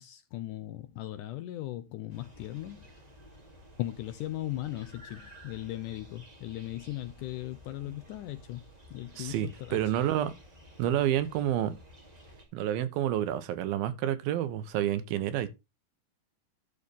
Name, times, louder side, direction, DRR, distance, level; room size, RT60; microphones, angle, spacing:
voice 1, 0.0-2.9 3.8-8.6 8.9-9.9, left 15 dB, 80° left, 1.9 m, -38 dB
sound 1, 2.1-12.4, equal, 15° right, 1.4 m, -53 dB
voice 2, 9.2-10.3 10.8-11.8 12.5-15.5, right 11 dB, 80° right, 2.8 m, -29 dB
12.0 x 4.2 x 5.2 m
omnidirectional pair, 4.2 m